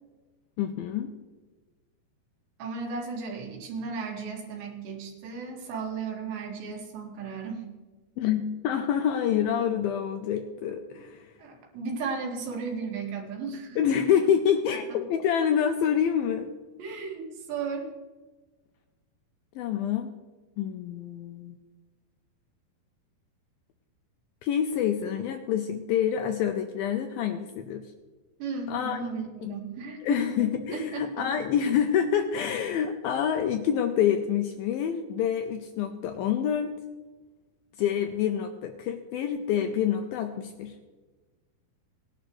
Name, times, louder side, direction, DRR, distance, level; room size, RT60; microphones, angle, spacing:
voice 1, 0.6-1.1 8.2-11.3 13.8-16.5 19.6-20.1 20.6-21.6 24.4-27.8 28.7-29.0 29.4-29.5 30.0-36.8 37.8-40.7, left 8 dB, 85° left, 6 dB, 2.1 m, -27 dB
voice 2, 2.6-7.7 11.4-13.8 16.8-17.9 28.4-30.2 30.7-31.3, right 5 dB, 85° right, 0 dB, 4.3 m, -35 dB
19.5 x 11.0 x 3.1 m, 1.3 s
omnidirectional pair, 4.9 m